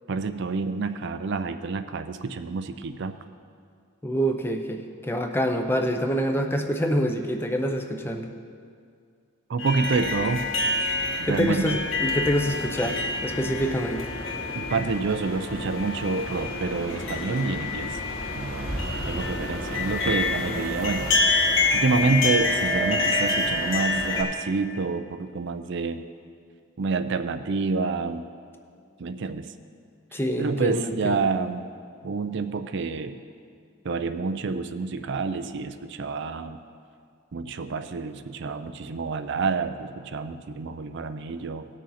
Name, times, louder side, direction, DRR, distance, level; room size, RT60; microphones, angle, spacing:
voice 1, 0.1-3.1 9.5-10.5 11.2-11.8 14.5-18.0 18.3-21.1 21.7-26.0 26.8-28.3 29.0-29.5 30.4-31.7 32.0-33.2 33.8-36.6 37.3-41.7, right 4 dB, 55° right, 9 dB, 0.4 m, -28 dB
voice 2, 4.0-8.3 11.2-14.1 30.1-31.2, equal, 10° left, 4 dB, 0.6 m, -26 dB
sound 1, 9.6-24.2, left 2 dB, 60° left, 1.5 m, -27 dB
18.0 x 6.4 x 4.2 m, 2.2 s
head